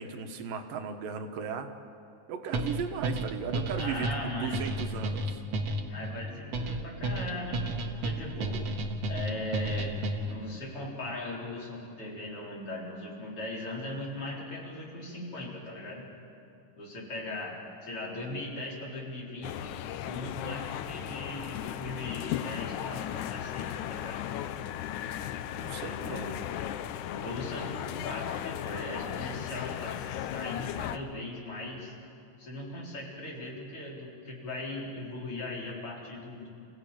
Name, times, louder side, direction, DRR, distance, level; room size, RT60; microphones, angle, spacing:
voice 1, 0.0-1.7 2.3-5.4 25.5-26.4, right 6 dB, 85° right, 6 dB, 3.1 m, -36 dB
sound 1, 2.5-10.4, right 2 dB, 55° right, 2.3 m, -32 dB
voice 2, 3.7-4.6 5.9-8.6 9.1-10.0 10.3-16.1 16.8-19.7 20.0-24.2 25.8-26.3 27.1-31.9 32.4-36.5, left 2 dB, 40° left, -3 dB, 4.8 m, -39 dB
sound 2, 19.4-31.0, left 11 dB, 75° left, 2.1 m, -36 dB
28.5 x 16.0 x 8.9 m, 2.8 s
omnidirectional pair, 3.9 m